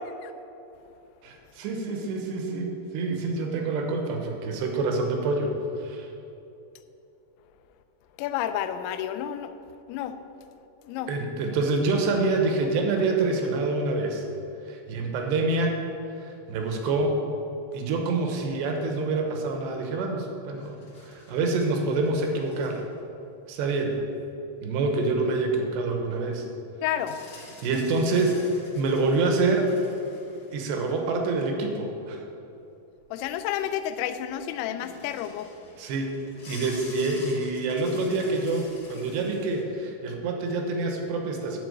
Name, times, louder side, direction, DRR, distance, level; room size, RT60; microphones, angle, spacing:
voice 1, 1.2-5.5 5.8-6.1 11.1-14.3 14.7-15.8 16.2-17.2 17.7-22.8 23.5-23.9 24.6-26.4 27.6-28.4 28.8-29.7 30.5-32.2 35.8-36.2 36.5-41.6, right 3 dB, 75° right, 3 dB, 3.1 m, -26 dB
voice 2, 8.2-9.5 9.9-10.2 10.8-11.1 26.8-27.2 33.1-35.5, left 10 dB, 85° left, 10 dB, 2.9 m, -30 dB
sound 1, 20.5-23.0 23.6-23.7 27.0-31.4 33.0-33.1 33.3-34.3 34.8-39.6, left 2 dB, 70° left, 1.2 m, -49 dB
11.5 x 4.3 x 8.0 m, 2.8 s
omnidirectional pair, 5.2 m